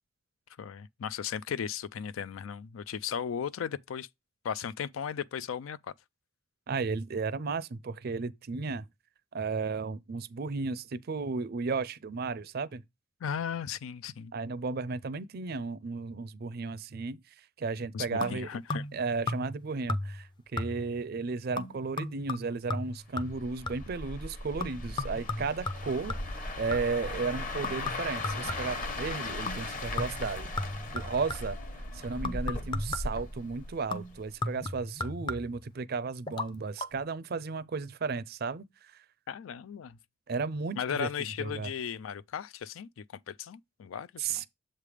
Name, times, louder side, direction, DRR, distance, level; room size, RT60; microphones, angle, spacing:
voice 1, 0.6-4.1 4.4-5.8 13.2-14.3 17.9-18.9 39.3-40.0 40.8-44.4, left 7 dB, 90° left, 0.4 m, -36 dB
voice 2, 6.7-8.8 9.3-12.8 14.3-17.2 17.6-18.5 18.9-30.5 30.9-31.6 31.9-38.7 40.3-41.1 41.4-41.7 44.2-44.5, right 4 dB, 50° right, 0.4 m, -34 dB
sound 1, 18.2-19.0 19.3-19.6 19.9-20.3 20.6-21.0 21.6-24.0 24.6-27.1 27.6-28.9 29.5-29.7 30.0-31.6 32.2-33.3 33.9-35.7 36.3-36.5 36.8-36.9, left 2 dB, 25° left, 0.5 m, -36 dB
sound 2, 23.3-34.4 34.7-35.0, left 2 dB, 40° left, 1.0 m, -38 dB
7.4 x 3.3 x 4.9 m
head